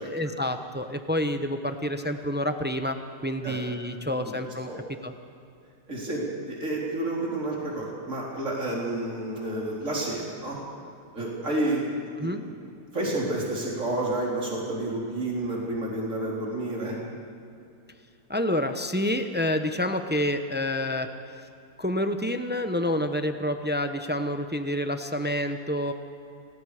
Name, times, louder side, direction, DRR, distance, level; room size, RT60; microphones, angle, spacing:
voice 1, 0.0-3.0 3.2-4.7 5.0-5.1 12.2-12.4 18.3-21.1 21.8-25.9, left 1 dB, 10° right, 7 dB, 0.7 m, -28 dB
voice 2, 5.9-10.6 11.1-17.0, right 1 dB, 50° right, -4 dB, 4.5 m, -30 dB
29.5 x 19.5 x 5.0 m, 2.5 s
omnidirectional pair, 1.8 m